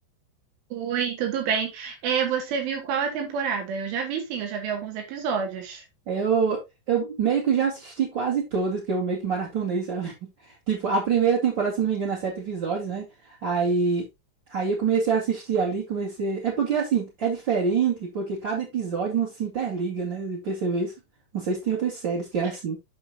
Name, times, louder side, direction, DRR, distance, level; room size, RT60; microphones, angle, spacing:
voice 1, 0.7-5.8, right 7 dB, 85° right, 4.7 m, -28 dB
voice 2, 6.1-6.6 6.9-10.1 10.7-13.0 13.4-14.0 14.5-20.9 21.3-22.8, right 6 dB, 40° right, 1.7 m, -25 dB
8.8 x 6.3 x 2.8 m
omnidirectional pair, 5.4 m